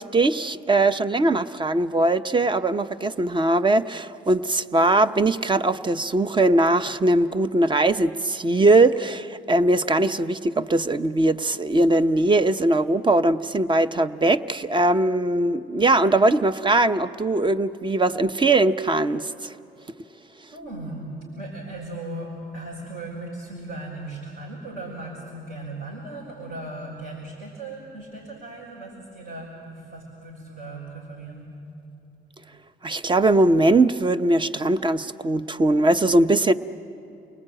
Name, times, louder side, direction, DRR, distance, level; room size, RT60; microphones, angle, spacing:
voice 1, 0.0-19.5 32.8-36.5, right 2 dB, 25° right, 12 dB, 0.8 m, -20 dB
voice 2, 20.5-31.6, right 2 dB, 55° right, -4 dB, 5.8 m, -37 dB
29.0 x 19.5 x 8.8 m, 2.8 s
cardioid pair, 90°, 20 cm